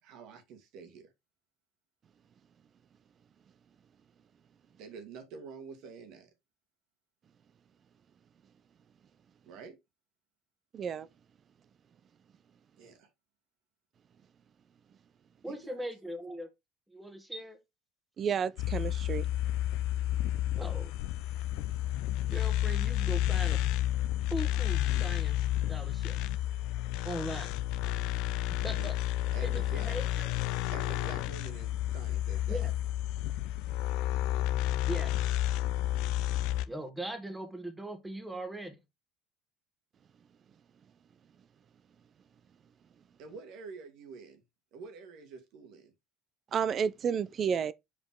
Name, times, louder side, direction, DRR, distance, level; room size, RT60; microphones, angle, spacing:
voice 1, 0.0-1.1 4.8-6.3 9.4-9.8 12.8-13.1 15.5-15.8 28.7-28.9 29.3-29.9 30.7-32.7 43.2-44.4 44.7-45.9, right 5 dB, 70° right, 1.9 m, -47 dB
voice 2, 10.7-11.1 18.2-19.3 46.5-47.7, right 7 dB, 40° right, 0.5 m, -31 dB
voice 3, 15.4-16.5 16.9-17.6 20.5-20.9 22.3-23.7 24.3-26.2 27.0-27.5 28.6-28.9 29.4-30.3 32.5-32.7 34.8-35.3 36.7-38.8, right 1 dB, 10° right, 1.7 m, -40 dB
sound 1, 18.6-36.7, left 13 dB, 75° left, 0.5 m, -31 dB
5.2 x 5.1 x 3.7 m
supercardioid pair, 90°, 0 cm